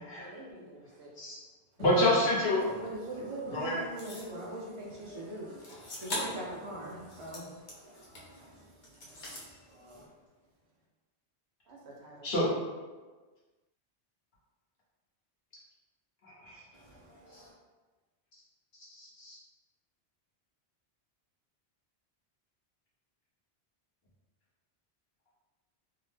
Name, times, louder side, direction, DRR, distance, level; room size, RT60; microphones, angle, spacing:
voice 1, 0.0-1.1 1.8-3.2 11.7-12.3, right 1 dB, 80° right, -2 dB, 0.9 m, -49 dB
voice 2, 1.8-2.6 3.5-3.8 12.2-12.5 16.2-16.6 17.3-17.4 18.9-19.4, left 1 dB, 70° left, -7 dB, 1.1 m, -28 dB
voice 3, 2.5-10.1 16.7-17.5, right 1 dB, 45° right, -4 dB, 0.4 m, -43 dB
sound 1, 4.0-4.4 5.6-6.5 6.9-8.4 8.8-9.5, left 1 dB, 50° left, 0.7 m, -41 dB
2.7 x 2.1 x 3.2 m, 1.3 s
omnidirectional pair, 1.1 m